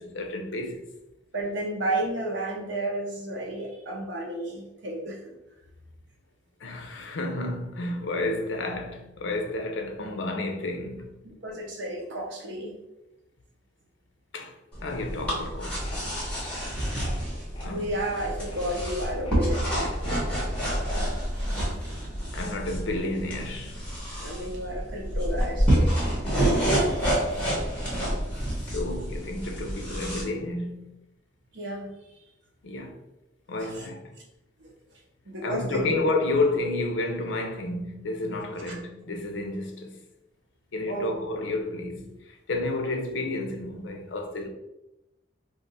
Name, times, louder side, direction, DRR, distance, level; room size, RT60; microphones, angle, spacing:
voice 1, 0.1-0.8 6.6-11.1 14.3-14.5 14.8-16.6 17.6-17.9 22.3-23.8 28.6-31.0 32.6-33.0 33.5-34.1 35.4-40.0 40.7-44.5, left 2 dB, 80° left, 0.6 m, -31 dB
voice 2, 1.3-5.2 11.2-12.8 15.3-15.4 17.6-20.0 21.3-21.9 24.2-25.9 26.7-27.1 31.5-32.2 33.6-33.9 34.6-34.7 35.2-36.0 38.6-38.8 40.8-41.1, right 1 dB, 75° right, 0.8 m, -32 dB
sound 1, 14.7-30.2, right 1 dB, 5° left, 1.0 m, -28 dB
sound 2, 15.7-16.0 16.3-17.2 17.5-17.7 18.1-20.6, left 2 dB, 25° left, 0.5 m, -46 dB
2.6 x 2.3 x 4.0 m
head